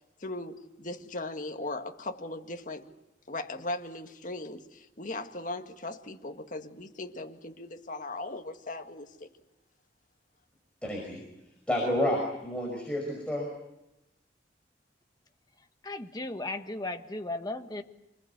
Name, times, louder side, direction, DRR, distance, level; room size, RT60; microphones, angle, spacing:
voice 1, 0.2-2.9 3.3-9.3, left 2 dB, 45° left, 4 dB, 1.9 m, -38 dB
voice 2, 10.8-11.2 11.7-13.5, left 1 dB, 5° left, -2 dB, 5.6 m, -30 dB
voice 3, 15.8-17.8, left 2 dB, 25° left, 6 dB, 1.5 m, -36 dB
26.5 x 21.0 x 8.2 m, 0.92 s
head